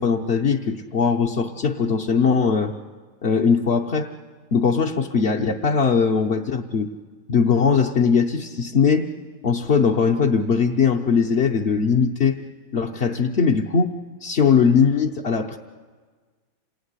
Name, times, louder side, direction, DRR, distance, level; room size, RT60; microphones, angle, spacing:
voice 1, 0.0-2.7 3.2-4.1 4.5-6.9 7.3-9.1 9.4-12.4 12.7-13.9 14.2-15.6, left 6 dB, 45° left, -1 dB, 0.9 m, -20 dB
28.0 x 18.5 x 9.8 m, 1.5 s
omnidirectional pair, 2.1 m